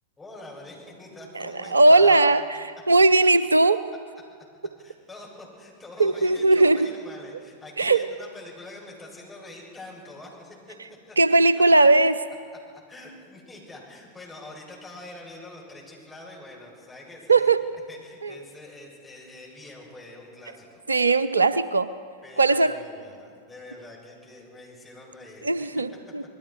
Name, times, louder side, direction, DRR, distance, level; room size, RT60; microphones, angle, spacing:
voice 1, 0.2-2.3 4.8-10.7 11.1-11.4 12.7-17.5 17.9-20.8 22.2-25.8, left 2 dB, 10° left, -4 dB, 7.9 m, -44 dB
voice 2, 1.3-2.4 2.9-3.8 6.0-6.9 7.8-8.0 11.2-12.2 17.3-17.6 18.2-18.3 20.9-21.9 22.4-22.8 25.4-26.2, right 2 dB, 75° right, 15 dB, 0.6 m, -18 dB
28.0 x 20.5 x 4.7 m, 2.1 s
figure-of-eight pair, 90°, 0 cm